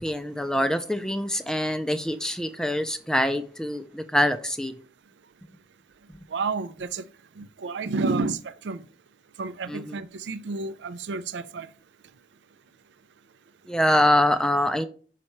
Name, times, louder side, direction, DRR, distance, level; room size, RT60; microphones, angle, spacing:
voice 1, 0.0-4.7 9.7-10.0 13.7-14.9, left 1 dB, 5° left, 0.4 m, -24 dB
voice 2, 6.3-7.0 7.4-8.8 9.4-11.7, right 4 dB, 90° right, 0.5 m, -30 dB
5.8 x 5.3 x 3.1 m
head